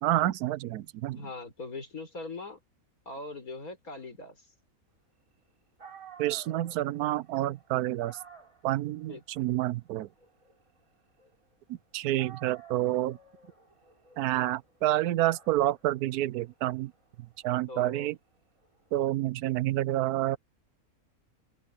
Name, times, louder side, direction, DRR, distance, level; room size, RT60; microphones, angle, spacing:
voice 1, 0.0-1.2 6.2-8.2 8.6-10.1 11.9-13.2 14.2-16.9 17.4-18.2 18.9-20.4, right 14 dB, 90° right, 1.1 m, -28 dB
voice 2, 1.1-2.6 3.1-4.4 9.1-9.2 17.7-18.1, left 3 dB, 70° left, 5.9 m, -41 dB
Dog, 5.5-5.6 5.8-11.8 12.2-19.0, right 5 dB, 65° right, 6.7 m, -54 dB
omnidirectional pair, 1.6 m